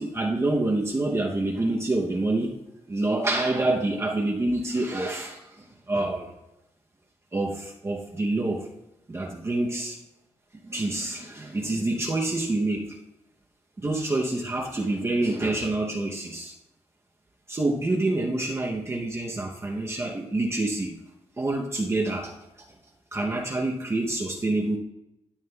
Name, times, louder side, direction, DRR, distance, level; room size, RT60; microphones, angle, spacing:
voice 1, 0.0-2.6 2.9-6.3 7.3-8.7 9.1-10.0 10.7-13.0 13.8-16.5 17.5-20.9 21.4-22.6 23.1-24.8, right 2 dB, 20° right, -1 dB, 0.8 m, -27 dB
13.0 x 7.1 x 2.3 m, 0.91 s
wide cardioid pair, 145°, 12 cm